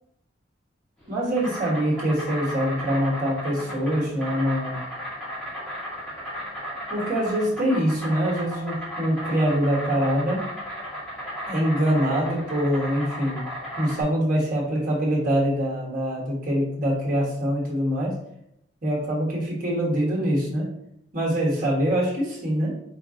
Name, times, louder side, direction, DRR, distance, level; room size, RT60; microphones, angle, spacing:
Insect, 1.0-14.0, equal, 5° left, 1.2 m, -35 dB
voice 1, 1.1-4.8 6.9-10.4 11.5-13.4 13.8-18.2 18.8-20.7 21.1-22.8, equal, 45° right, -4 dB, 1.4 m, -24 dB
5.2 x 2.4 x 3.7 m, 0.75 s
head